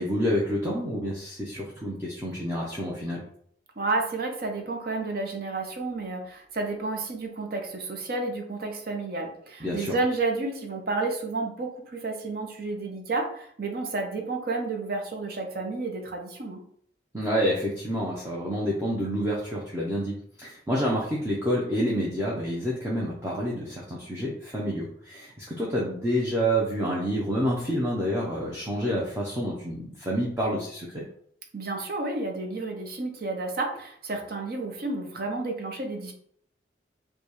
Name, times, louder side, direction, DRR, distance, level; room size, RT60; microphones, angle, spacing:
voice 1, 0.0-3.2 9.6-9.9 17.1-31.0, equal, 15° right, -5 dB, 0.6 m, -28 dB
voice 2, 3.8-16.7 31.5-36.1, right 3 dB, 55° right, 3 dB, 0.7 m, -31 dB
4.9 x 2.3 x 3.0 m, 0.64 s
head